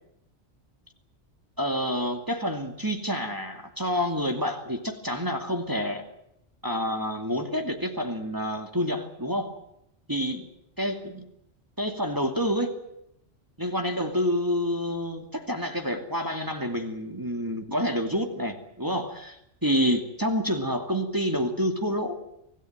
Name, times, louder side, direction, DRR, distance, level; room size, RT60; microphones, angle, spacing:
voice 1, 1.6-6.0 6.6-9.6 10.1-10.5 10.8-11.3 11.8-12.8 13.6-22.2, equal, 15° right, 4 dB, 2.6 m, -28 dB
25.5 x 17.0 x 9.4 m, 0.79 s
omnidirectional pair, 1.2 m